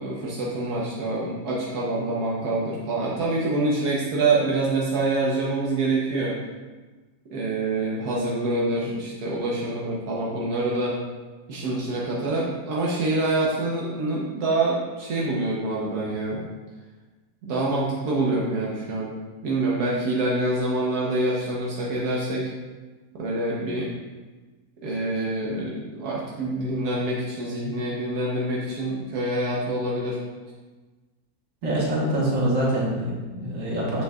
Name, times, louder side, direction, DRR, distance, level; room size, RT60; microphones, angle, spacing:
voice 1, 0.0-6.4 7.3-11.0 11.5-16.4 17.4-19.1 19.4-22.5 23.1-23.9 24.8-30.2, right 2 dB, 80° right, -5 dB, 1.5 m, -26 dB
voice 2, 31.6-34.0, right 1 dB, 60° right, -4 dB, 1.7 m, -25 dB
7.7 x 6.4 x 2.4 m, 1.3 s
omnidirectional pair, 1.6 m